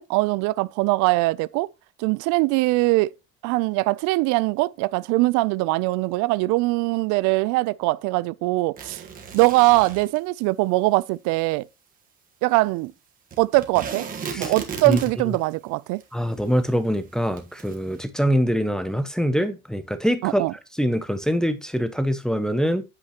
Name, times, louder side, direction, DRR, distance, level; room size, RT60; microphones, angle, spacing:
voice 1, 0.0-1.7 2.0-3.1 3.4-9.0 9.3-11.6 12.4-12.9 13.4-14.1 14.3-16.0 20.2-20.5, right 21 dB, 90° right, 0.5 m, -22 dB
sound 1, 8.8-10.2 13.3-15.4 16.0-16.1 16.3-16.4 17.4-17.8, right 6 dB, 30° right, 1.3 m, -35 dB
voice 2, 16.1-20.4 20.8-22.8, equal, ahead, 0.4 m, -24 dB
8.5 x 8.3 x 2.9 m
cardioid pair, 175°, 29 cm